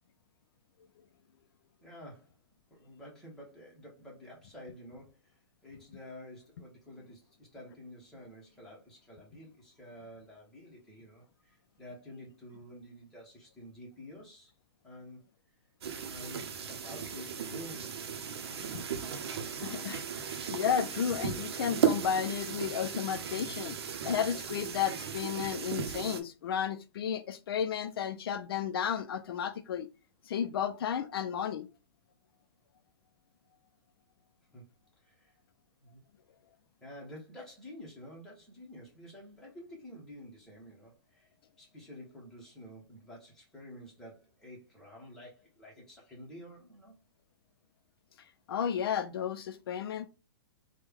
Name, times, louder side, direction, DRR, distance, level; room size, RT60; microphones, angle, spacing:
voice 1, 1.8-2.4 2.7-14.5 14.8-15.2 16.1-18.4 34.5-34.6 35.0-35.3 35.8-36.0 36.8-41.3 41.6-47.0, equal, 5° left, 0.8 m, -50 dB
sound 1, 15.8-26.2, right 7 dB, 85° right, 0.7 m, -36 dB
voice 2, 19.6-20.2 20.5-23.8 24.0-29.9 30.3-31.7 48.5-50.0, left 8 dB, 65° left, 0.4 m, -33 dB
3.2 x 2.2 x 3.4 m
hypercardioid pair, 175°, 13 cm